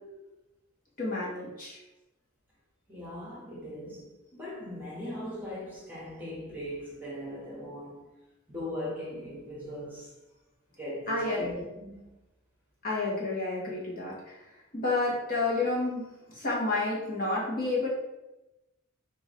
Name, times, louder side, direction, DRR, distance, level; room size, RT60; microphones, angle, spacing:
voice 1, 1.0-1.8 11.1-11.5 12.8-14.3 14.7-17.9, left 2 dB, 40° left, 1.3 m, -30 dB
voice 2, 2.9-8.0 8.5-10.1 10.8-12.1, left 1 dB, 10° right, 1.3 m, -39 dB
6.2 x 2.8 x 3.1 m
head